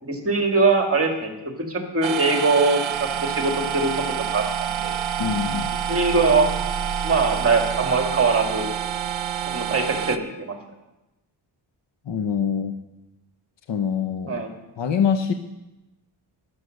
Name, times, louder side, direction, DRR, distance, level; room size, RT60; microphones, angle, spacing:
voice 1, 0.0-1.3 1.7-3.9 4.3-5.0 5.9-6.5 7.0-8.7 9.5-10.6 14.3-14.5, right 3 dB, 30° right, 3 dB, 2.3 m, -22 dB
sound 1, 2.0-10.2, right 9 dB, 70° right, 1.0 m, -27 dB
voice 2, 5.2-5.7 12.1-12.7 13.7-14.4 14.8-15.3, left 7 dB, 65° left, 7 dB, 0.9 m, -24 dB
14.0 x 12.0 x 6.6 m, 0.99 s
wide cardioid pair, 170°, 48 cm